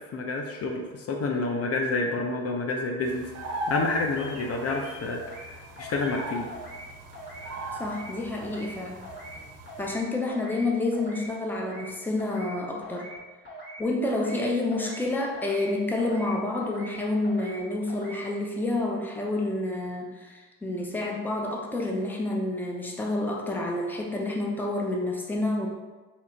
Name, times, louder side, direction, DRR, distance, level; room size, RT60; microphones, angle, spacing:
voice 1, 0.1-3.3 3.7-5.2 5.8-6.5, left 3 dB, 50° left, 2 dB, 0.5 m, -28 dB
sound 1, 3.0-10.0, equal, 55° right, 0.6 m, -39 dB
sound 2, 4.2-4.4 4.7-5.5 5.8-6.2 6.5-6.9 7.1-7.5 7.8-8.1 8.4-8.7 9.0-9.4 9.7-10.0 10.3-10.6 10.9-11.3 11.5-11.9 12.2-12.5 12.8-13.2 13.4-13.8 14.1-14.4 14.7-15.1 15.3-15.7 16.0-16.3 16.6-17.0 17.2-17.6 17.9-18.2, right 1 dB, 35° left, 1.1 m, -42 dB
voice 2, 7.8-9.1 9.8-13.1 13.8-25.7, left 2 dB, 5° left, -1 dB, 0.6 m, -29 dB
2.9 x 2.4 x 4.3 m, 1.3 s
cardioid pair, 90°, 30 cm